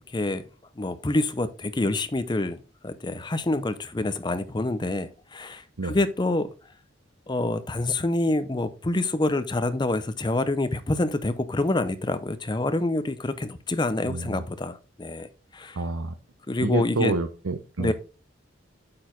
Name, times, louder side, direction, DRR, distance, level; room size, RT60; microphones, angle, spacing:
voice 1, 0.1-0.4 0.8-2.6 2.8-6.5 7.3-15.8 16.5-17.2 17.8-17.9, left 2 dB, 20° left, 0.6 m, -27 dB
voice 2, 14.1-14.4 15.8-16.1 16.6-17.9, right 3 dB, 85° right, 0.7 m, -28 dB
8.5 x 4.7 x 3.8 m
head